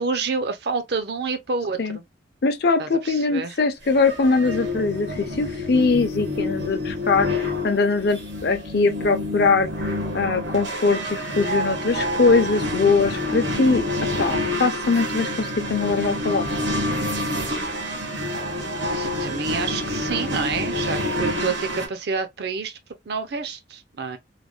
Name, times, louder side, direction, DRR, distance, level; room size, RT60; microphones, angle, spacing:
voice 1, 0.0-2.0 2.8-3.6 18.9-22.8 23.1-24.2, right 4 dB, 60° right, 0.5 m, -28 dB
voice 2, 2.4-9.7 10.1-13.8 14.2-16.5, left 4 dB, 60° left, 0.5 m, -21 dB
sound 1, 3.9-21.9, left 1 dB, 85° right, 1.2 m, -28 dB
3.2 x 2.1 x 2.4 m
head